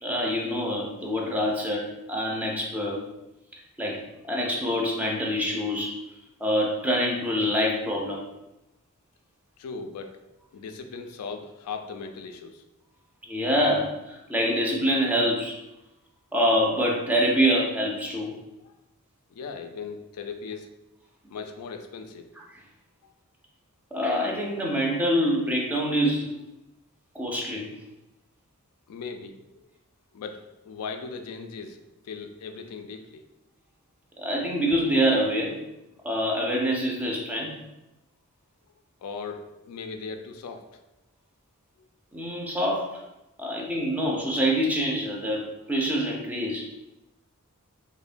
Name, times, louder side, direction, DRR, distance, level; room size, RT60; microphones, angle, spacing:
voice 1, 0.0-3.0 3.8-5.9 6.4-8.2 13.3-15.6 16.3-18.3 23.9-26.3 27.1-27.7 34.2-35.6 36.0-37.5 42.1-43.0 43.4-46.7, equal, 5° right, -2 dB, 0.4 m, -25 dB
voice 2, 9.6-10.2 10.5-12.6 18.6-18.7 19.3-20.7 21.3-22.3 28.9-29.4 30.1-31.8 32.0-33.2 39.0-40.7, left 5 dB, 80° left, 10 dB, 0.3 m, -38 dB
2.9 x 2.0 x 2.5 m, 0.94 s
head